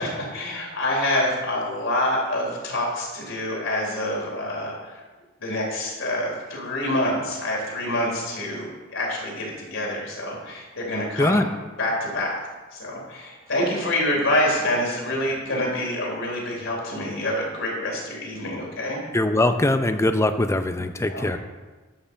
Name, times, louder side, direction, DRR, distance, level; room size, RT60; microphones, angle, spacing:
voice 1, 0.0-5.0 5.4-11.4 11.8-12.4 12.7-19.0 21.1-21.4, left 1 dB, 70° left, -2 dB, 3.5 m, -26 dB
voice 2, 19.1-21.4, left 1 dB, 15° left, 9 dB, 0.5 m, -21 dB
11.5 x 5.6 x 6.8 m, 1.3 s
head